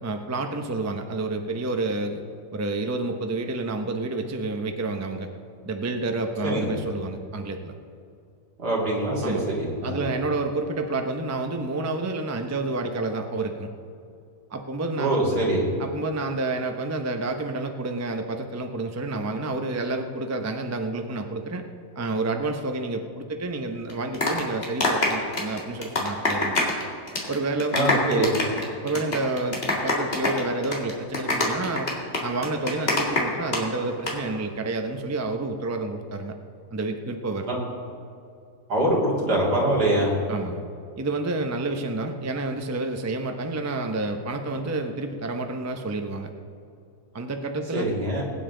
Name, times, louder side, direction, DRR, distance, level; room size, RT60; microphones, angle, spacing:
voice 1, 0.0-2.2 2.5-5.3 5.6-7.7 9.2-9.4 9.8-13.7 14.5-15.4 15.8-21.6 21.9-26.5 27.3-28.3 28.8-31.9 32.2-36.3 36.7-37.5 40.3-40.6 41.0-46.3 47.1-47.9, right 2 dB, 20° right, 5 dB, 0.4 m, -29 dB
voice 2, 6.4-6.8 8.6-10.0 15.0-15.6 27.7-28.3 37.4-37.6 38.7-40.1 47.7-48.2, right 1 dB, 80° right, -4 dB, 3.2 m, -24 dB
sound 1, 23.9-26.8 27.1-27.4 27.6-33.6 33.9-34.1, left 2 dB, 40° left, 2.1 m, -24 dB
20.5 x 9.2 x 3.8 m, 2.5 s
omnidirectional pair, 1.7 m